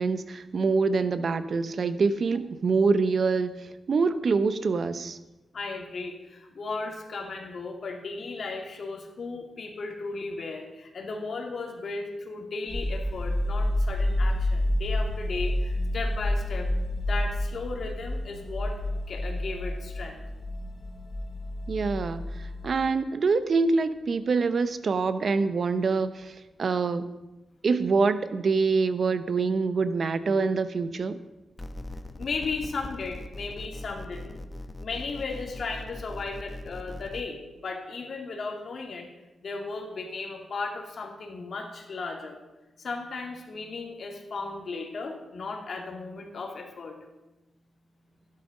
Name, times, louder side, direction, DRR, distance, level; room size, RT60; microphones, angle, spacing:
voice 1, 0.0-3.5 3.9-5.2 21.7-27.1 27.6-31.2, right 4 dB, 60° right, 12 dB, 0.8 m, -25 dB
voice 2, 5.5-16.7 17.0-18.8 19.1-20.2 32.2-34.4 34.8-39.1 39.4-42.4 42.8-47.0, left 3 dB, 65° left, 1 dB, 2.5 m, -35 dB
sound 1, 12.7-22.9, left 1 dB, 40° left, 3.2 m, -29 dB
sound 2, 31.6-37.2, left 1 dB, 20° left, 1.1 m, -40 dB
12.5 x 11.0 x 5.2 m, 1.0 s
cardioid pair, 70°, 0 cm